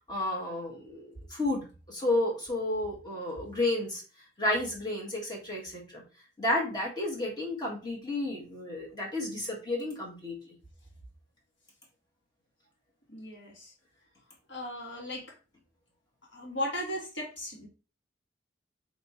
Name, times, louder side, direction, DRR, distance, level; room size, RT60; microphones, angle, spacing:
voice 1, 0.0-4.0 4.4-6.0 6.4-10.4, left 1 dB, 25° left, -1 dB, 1.5 m, -32 dB
voice 2, 13.1-13.7 14.5-15.3 16.3-17.7, left 1 dB, 75° left, -1 dB, 1.7 m, -36 dB
3.2 x 3.0 x 4.2 m, 0.33 s
head